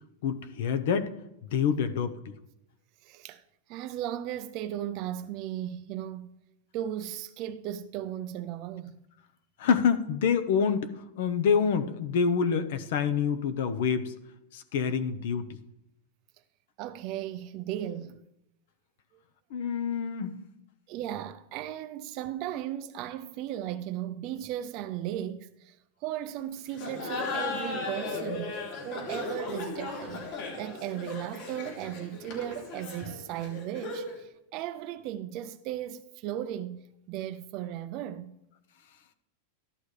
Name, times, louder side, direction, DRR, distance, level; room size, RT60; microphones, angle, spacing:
voice 1, 0.2-2.1 9.6-14.1 14.5-15.4 19.5-20.4, left 6 dB, 60° left, 0.9 m, -27 dB
voice 2, 3.0-3.4 3.7-6.3 6.7-9.0 16.8-18.2 19.1-19.2 20.9-30.3 30.6-38.4, right 11 dB, 35° right, 0.5 m, -36 dB
Laughter, 26.7-34.2, left 3 dB, 40° left, 3.0 m, -36 dB
14.0 x 11.5 x 3.3 m
supercardioid pair, 170°, 0 cm